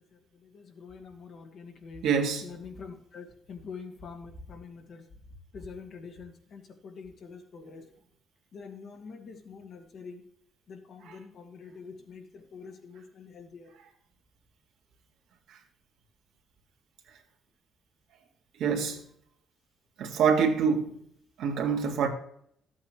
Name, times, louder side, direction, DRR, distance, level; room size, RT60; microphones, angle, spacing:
voice 1, 0.5-2.0 2.4-5.0 5.5-6.6 6.9-7.8 8.5-10.2 10.7-12.2 12.5-13.7, left 5 dB, 60° left, 1.9 m, -45 dB
voice 2, 2.0-2.5 11.1-11.2 18.6-19.0 20.0-20.9 21.4-22.1, right 6 dB, 85° right, 1.8 m, -25 dB
13.0 x 8.3 x 3.1 m
cardioid pair, 90°, 0 cm